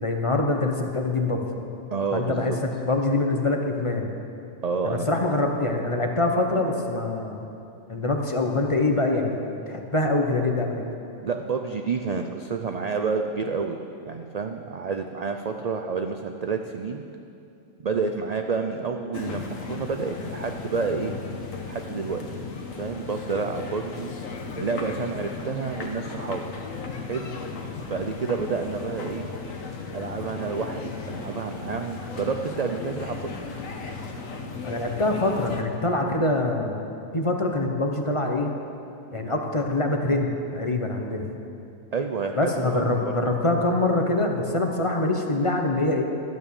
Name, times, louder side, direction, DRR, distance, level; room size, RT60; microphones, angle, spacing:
voice 1, 0.0-1.5 2.1-4.1 4.8-7.5 7.9-9.4 9.7-10.8 34.6-36.8 37.1-38.5 39.1-41.3 42.4-46.0, left 2 dB, 25° left, 2 dB, 0.9 m, -24 dB
voice 2, 1.9-2.6 4.6-5.1 11.2-13.8 14.1-17.0 17.8-21.1 21.7-22.2 22.8-24.1 24.6-26.4 27.1-27.3 27.9-29.3 29.9-33.5 41.9-43.1, right 5 dB, 65° right, 5 dB, 0.4 m, -29 dB
sound 1, 19.1-35.6, left 4 dB, 75° left, 1.5 m, -36 dB
12.5 x 8.9 x 7.1 m, 2.6 s
omnidirectional pair, 1.4 m